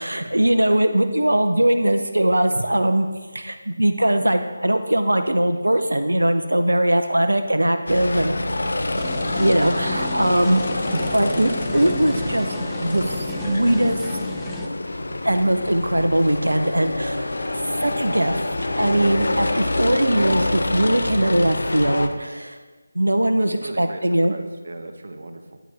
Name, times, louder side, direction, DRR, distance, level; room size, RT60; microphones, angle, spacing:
voice 1, 0.0-8.4 9.4-10.6 10.9-14.2 15.2-17.4 17.8-18.5 18.8-22.6 22.9-24.3, right 1 dB, 85° right, 7 dB, 0.6 m, -21 dB
sound 1, 7.9-22.1, left 2 dB, 65° left, 0.7 m, -26 dB
voice 2, 8.5-9.0 19.2-19.6 23.4-25.6, right 2 dB, 55° right, 6 dB, 0.8 m, -38 dB
sound 2, 9.0-14.7, left 2 dB, 5° left, 0.5 m, -33 dB
10.0 x 4.8 x 4.3 m, 1.3 s
figure-of-eight pair, 160°, 0 cm